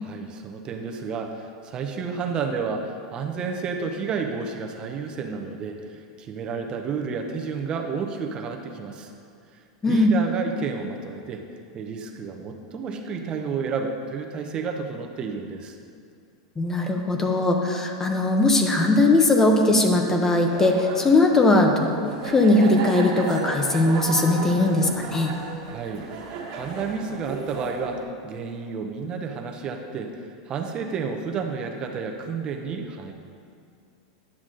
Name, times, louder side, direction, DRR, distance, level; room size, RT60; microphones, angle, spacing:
voice 1, 0.0-9.1 9.5-11.4 11.7-15.7 25.6-26.0 26.5-33.1, right 5 dB, 35° right, 3 dB, 0.8 m, -31 dB
voice 2, 16.6-21.9 22.2-25.3, left 2 dB, 15° left, 3 dB, 0.9 m, -20 dB
sound 1, 20.5-28.0, right 4 dB, 55° right, 1.7 m, -35 dB
9.8 x 6.0 x 3.9 m, 2.3 s
hypercardioid pair, 110°, 3 cm